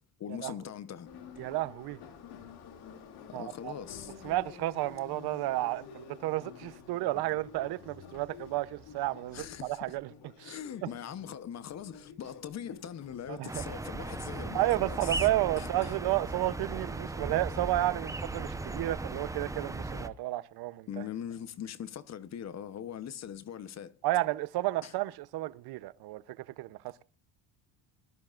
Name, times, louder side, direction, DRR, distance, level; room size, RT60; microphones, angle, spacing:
voice 1, 0.2-1.1 3.3-4.2 9.3-9.8 10.4-15.3 15.6-15.9 20.9-24.0 24.8-24.9, left 9 dB, 40° left, 0.9 m, -41 dB
Subway metro underground, 1.1-13.6, left 6 dB, 65° left, 2.6 m, -50 dB
voice 2, 1.4-2.0 3.3-3.7 4.2-10.1 10.4-10.9 13.3-13.5 14.5-20.9 24.0-27.0, right 16 dB, 65° right, 0.8 m, -32 dB
sound 1, 13.5-20.1, right 2 dB, 10° right, 0.8 m, -37 dB
22.0 x 13.0 x 2.5 m
cardioid pair, 125°, 41 cm